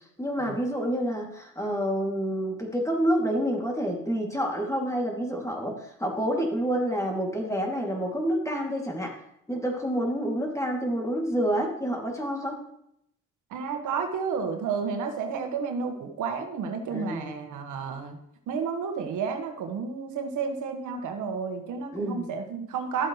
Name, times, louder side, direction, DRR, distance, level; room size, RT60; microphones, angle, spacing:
voice 1, 0.2-9.2 9.5-12.6 16.9-17.3 21.9-22.3, equal, 10° left, 1 dB, 2.5 m, -28 dB
voice 2, 13.5-18.2 18.5-23.1, right 5 dB, 80° right, 5 dB, 1.5 m, -31 dB
12.5 x 7.9 x 3.2 m, 0.76 s
cardioid pair, 90°, 30 cm